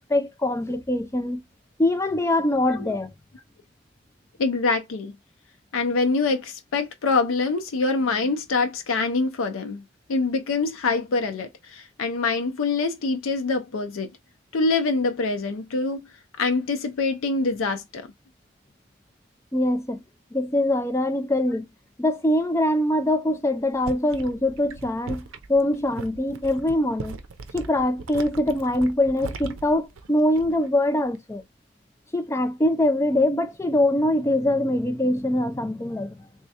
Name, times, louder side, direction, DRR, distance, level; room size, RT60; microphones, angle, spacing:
voice 1, 0.0-1.4 1.8-3.1 19.5-20.0 20.3-21.7 22.0-27.2 27.5-31.4 32.1-36.2, left 1 dB, 15° left, 0.4 m, -23 dB
voice 2, 4.4-5.2 5.7-9.8 10.1-14.1 14.5-16.0 16.4-18.1, left 3 dB, 85° left, 0.5 m, -25 dB
sound 1, 23.6-30.7 31.0-31.4, right 4 dB, 85° right, 0.5 m, -39 dB
3.5 x 3.2 x 2.8 m
head